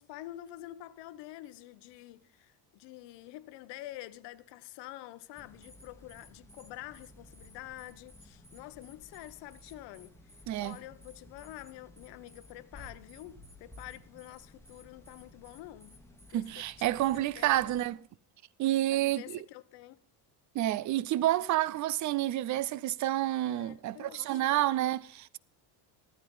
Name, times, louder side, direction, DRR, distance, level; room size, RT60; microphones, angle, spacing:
voice 1, 0.0-10.2 10.6-16.0 16.3-17.8 18.9-20.0 23.4-24.6, left 15 dB, 75° left, 1.1 m, -48 dB
sound 1, 5.4-17.9, left 1 dB, 5° left, 1.3 m, -55 dB
voice 2, 10.5-10.8 16.3-18.0 18.6-19.4 20.5-25.4, right 14 dB, 45° right, 0.6 m, -29 dB
15.5 x 13.5 x 5.4 m
cardioid pair, 175°, 42 cm